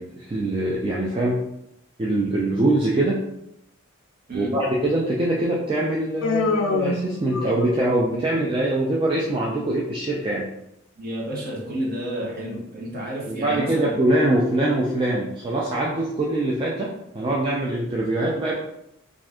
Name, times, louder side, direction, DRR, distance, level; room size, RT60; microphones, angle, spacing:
voice 1, 0.0-1.4 2.0-3.2 4.3-10.5 13.3-18.5, right 1 dB, 25° right, -4 dB, 0.3 m, -23 dB
Human voice, 6.2-7.9, left 3 dB, 65° left, 0.4 m, -25 dB
voice 2, 11.0-14.0, right 1 dB, 45° right, -3 dB, 0.9 m, -30 dB
2.5 x 2.4 x 3.4 m, 0.82 s
head